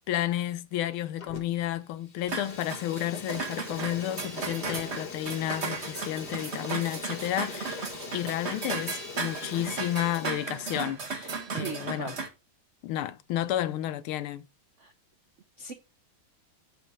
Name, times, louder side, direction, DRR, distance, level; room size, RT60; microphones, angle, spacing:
voice 1, 0.1-12.2 12.8-14.5, left 13 dB, 90° left, 1.6 m, -32 dB
Fire, 1.2-1.7 2.0-10.8, left 5 dB, 50° left, 2.0 m, -42 dB
sound 1, 2.3-12.3, right 4 dB, 35° right, 1.5 m, -36 dB
voice 2, 11.5-12.2 14.8-14.9 15.6-15.7, right 6 dB, 70° right, 0.7 m, -37 dB
10.5 x 4.4 x 4.9 m
omnidirectional pair, 2.3 m